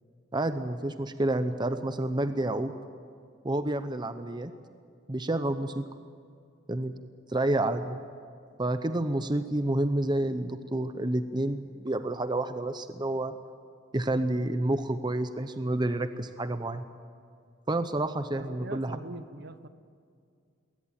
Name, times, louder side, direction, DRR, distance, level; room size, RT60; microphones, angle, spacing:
voice 1, 0.3-2.7 3.4-4.5 5.1-5.9 6.7-6.9 7.3-8.0 8.6-13.3 13.9-16.8 17.7-19.0, right 1 dB, 20° right, 10 dB, 0.8 m, -29 dB
voice 2, 18.4-19.7, right 2 dB, 55° right, 12 dB, 1.0 m, -42 dB
21.0 x 18.5 x 9.1 m, 2.3 s
head